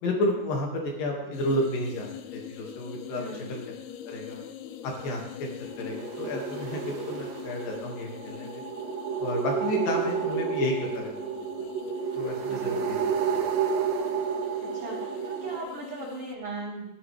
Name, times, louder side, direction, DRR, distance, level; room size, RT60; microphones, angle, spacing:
voice 1, 0.0-3.6 4.1-4.4 4.8-5.5 5.8-8.5 9.2-11.4 12.2-13.4, left 1 dB, 55° left, 0 dB, 3.8 m, -31 dB
sound 1, 1.3-16.4, left 10 dB, 80° left, 2.4 m, -43 dB
voice 2, 3.1-3.5 9.8-10.2 12.3-13.0 14.6-16.9, right 2 dB, 40° right, -6 dB, 3.0 m, -39 dB
sound 2, 5.7-15.6, right 6 dB, 65° right, 2.7 m, -31 dB
14.5 x 13.5 x 3.5 m, 0.92 s
omnidirectional pair, 4.9 m